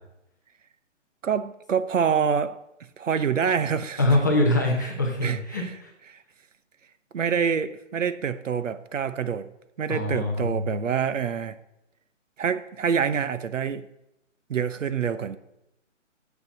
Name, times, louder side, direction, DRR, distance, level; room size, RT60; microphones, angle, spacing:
voice 1, 1.2-2.6 3.0-4.0 5.2-5.7 6.1-6.2 7.1-9.5 9.8-11.6 12.4-13.9 14.5-15.4, right 7 dB, 75° right, 0.8 m, -26 dB
voice 2, 4.0-5.9 9.9-10.8, left 1 dB, 15° left, 0.8 m, -24 dB
7.0 x 6.7 x 7.2 m
hypercardioid pair, 175°, 38 cm